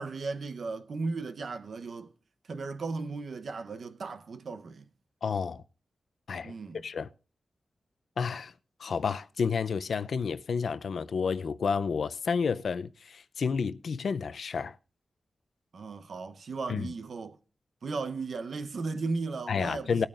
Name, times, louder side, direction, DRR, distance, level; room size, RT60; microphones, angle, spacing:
voice 1, 0.0-2.1 2.5-4.9 6.4-6.8 15.7-17.4 17.8-20.1, right 4 dB, 65° right, 0.8 m, -36 dB
voice 2, 5.2-5.6 6.3-7.1 8.2-8.5 8.8-14.7 16.7-16.9 19.5-20.1, left 5 dB, 75° left, 0.5 m, -30 dB
19.0 x 8.9 x 2.5 m
wide cardioid pair, 95°, 0 cm